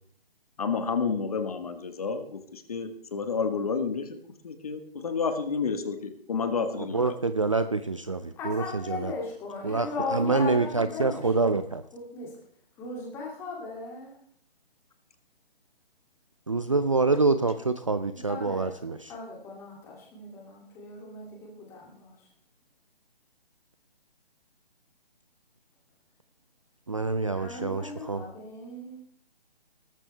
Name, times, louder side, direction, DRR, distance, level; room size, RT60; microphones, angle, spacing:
voice 1, 0.6-4.2 4.4-7.2, left 5 dB, 35° left, 8 dB, 1.5 m, -30 dB
voice 2, 6.9-9.1 9.6-11.8 16.5-19.1 26.9-28.2, right 3 dB, 30° right, 11 dB, 0.5 m, -26 dB
voice 3, 8.4-11.6 11.9-12.3 12.8-14.2 18.1-18.7 19.1-22.2 27.3-29.0, left 3 dB, 10° left, -2 dB, 2.6 m, -38 dB
18.5 x 13.5 x 3.3 m, 0.62 s
hypercardioid pair, 170°, 31 cm